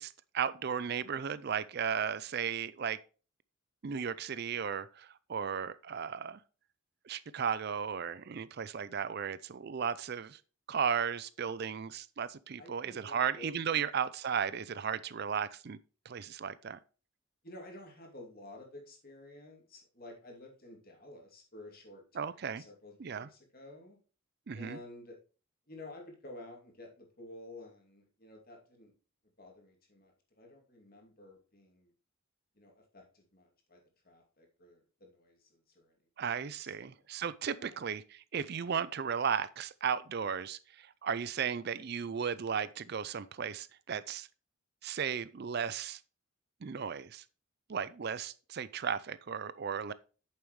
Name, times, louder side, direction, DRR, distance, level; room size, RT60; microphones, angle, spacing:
voice 1, 0.0-3.0 3.8-6.4 7.1-10.4 10.7-15.8 16.1-16.8 22.2-22.6 23.0-23.3 24.5-24.8 36.2-44.3 44.8-46.0 46.6-47.2 47.7-49.9, right 7 dB, 50° right, 0.4 m, -35 dB
voice 2, 12.6-13.9 17.4-24.0 24.5-25.2 25.7-28.9 29.4-31.9 32.5-36.0 36.6-36.9 37.5-37.9, left 2 dB, 45° left, 2.6 m, -52 dB
8.9 x 7.0 x 3.1 m
head